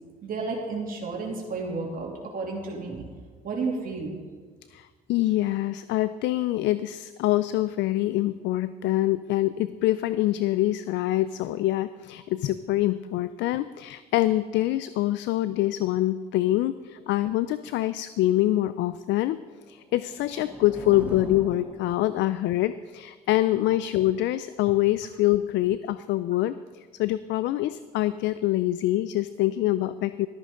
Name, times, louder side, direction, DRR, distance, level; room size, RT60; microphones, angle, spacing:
voice 1, 0.2-3.0 3.4-4.1, right 3 dB, 45° right, -2 dB, 2.9 m, -32 dB
voice 2, 4.7-19.4 19.7-30.3, left 15 dB, 70° left, 14 dB, 0.4 m, -25 dB
sound 1, 19.6-22.5, right 1 dB, 5° right, 2.8 m, -42 dB
13.5 x 13.0 x 3.8 m, 1.5 s
supercardioid pair, 80°, 20 cm